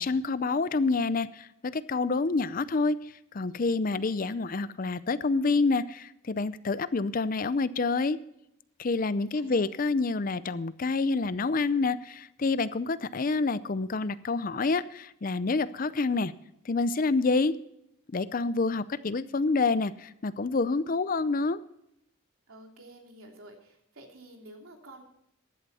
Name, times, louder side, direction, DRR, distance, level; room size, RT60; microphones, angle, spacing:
voice 1, 0.0-8.2 8.8-16.3 16.7-17.6 18.1-21.6, left 3 dB, 40° left, 16 dB, 0.5 m, -28 dB
voice 2, 9.0-9.7 22.5-25.0, right 1 dB, 80° right, 1 dB, 3.2 m, -50 dB
15.0 x 11.5 x 4.2 m, 0.78 s
head